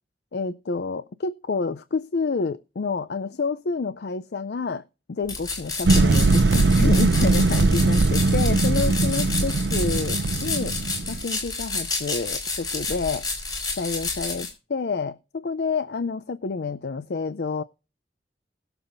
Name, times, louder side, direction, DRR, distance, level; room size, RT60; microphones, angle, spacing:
voice 1, 0.3-10.7 11.1-13.2 13.8-17.6, left 4 dB, 65° left, 0.5 m, -29 dB
sound 1, 5.3-14.5, left 3 dB, 20° left, 3.9 m, -30 dB
sound 2, 5.8-11.2, right 3 dB, 80° right, 0.5 m, -20 dB
21.0 x 7.0 x 2.6 m
head